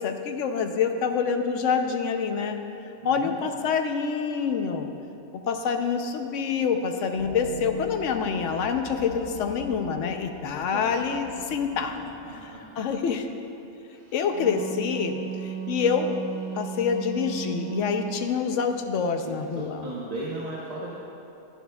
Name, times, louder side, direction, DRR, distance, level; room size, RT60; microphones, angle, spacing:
voice 1, 0.0-2.6 3.0-4.9 5.5-12.0 12.8-13.3 14.1-16.1 16.5-19.9, left 6 dB, 70° left, 6 dB, 1.0 m, -26 dB
voice 2, 3.0-3.4 10.7-11.0 12.2-12.8 19.2-21.0, right 2 dB, 35° right, -6 dB, 0.9 m, -36 dB
sound 1, 7.2-13.0, left 3 dB, 45° left, 2.4 m, -41 dB
Wind instrument woodwind instrument, 14.1-18.3, right 7 dB, 55° right, 1.3 m, -35 dB
11.0 x 11.0 x 2.3 m, 2.9 s
omnidirectional pair, 1.3 m